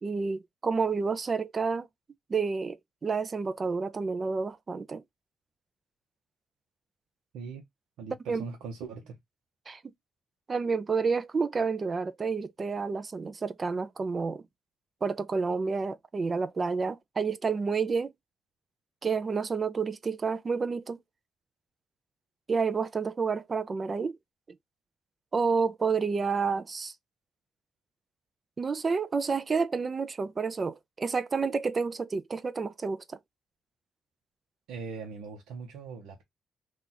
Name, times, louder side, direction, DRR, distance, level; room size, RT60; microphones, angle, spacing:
voice 1, 0.0-1.9 2.3-5.0 8.3-8.4 9.7-9.8 10.5-14.4 15.0-18.1 19.0-21.0 22.5-24.2 25.3-26.9 28.6-33.2, right 5 dB, 35° right, 0.4 m, -29 dB
voice 2, 8.0-9.2 34.7-36.2, right 5 dB, 85° right, 0.8 m, -40 dB
2.9 x 2.4 x 3.8 m
cardioid pair, 90°, 0 cm